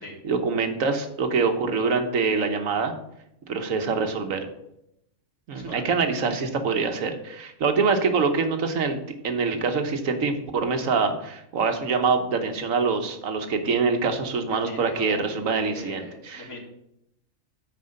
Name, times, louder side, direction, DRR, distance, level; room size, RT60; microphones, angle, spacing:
voice 1, 0.2-2.9 3.5-4.5 5.5-9.0 9.2-16.5, right 4 dB, 90° right, 6 dB, 1.5 m, -25 dB
voice 2, 5.5-5.9 14.5-15.3 15.6-16.6, left 1 dB, 65° left, 0 dB, 2.5 m, -41 dB
9.5 x 4.8 x 6.5 m, 0.81 s
omnidirectional pair, 1.4 m